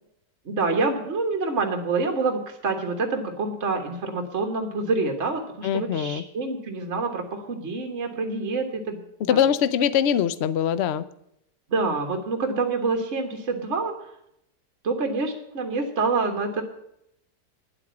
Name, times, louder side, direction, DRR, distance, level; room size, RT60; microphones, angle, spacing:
voice 1, 0.4-9.0 9.3-9.4 11.7-14.1 14.8-16.6, right 3 dB, 40° right, 4 dB, 1.6 m, -27 dB
voice 2, 5.6-6.2 9.2-11.1, left 9 dB, 75° left, 15 dB, 0.6 m, -22 dB
10.0 x 8.5 x 9.5 m, 0.79 s
omnidirectional pair, 1.9 m